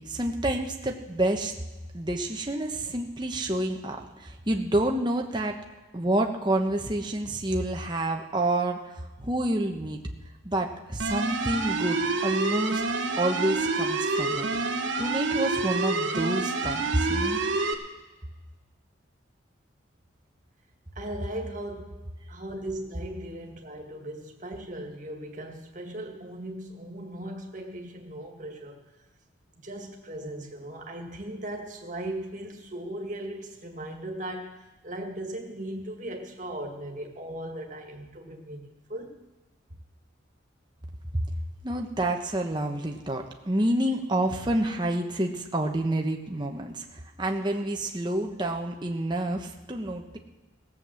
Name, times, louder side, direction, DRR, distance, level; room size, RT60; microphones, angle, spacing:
voice 1, 0.0-1.5 1.9-5.6 5.9-8.9 9.2-10.0 10.4-12.8 13.2-14.5 15.0-17.4 41.1-41.2 41.6-50.2, right 1 dB, 20° right, 2 dB, 1.1 m, -28 dB
sound 1, 11.0-17.7, right 3 dB, 70° right, 1.3 m, -28 dB
voice 2, 21.0-28.8 29.6-39.2, right 1 dB, 40° right, 2 dB, 2.0 m, -38 dB
17.0 x 7.7 x 7.6 m, 1.1 s
head